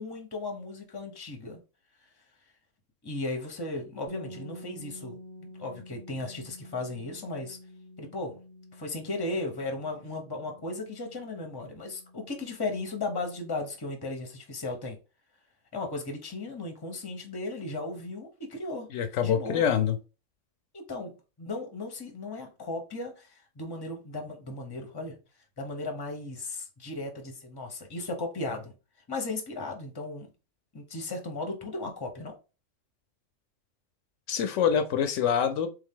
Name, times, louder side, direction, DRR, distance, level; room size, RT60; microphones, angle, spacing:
voice 1, 0.0-1.6 3.0-7.6 8.0-8.4 8.7-15.0 15.7-18.9 19.2-19.6 20.7-25.2 25.6-28.7 29.1-30.3 30.7-32.4, left 2 dB, 20° left, 0.8 m, -36 dB
sound 1, 4.1-13.8, left 1 dB, 80° right, 1.7 m, -50 dB
voice 2, 18.9-20.0 34.3-35.7, left 8 dB, 75° left, 0.9 m, -25 dB
3.6 x 3.3 x 3.6 m
omnidirectional pair, 1.3 m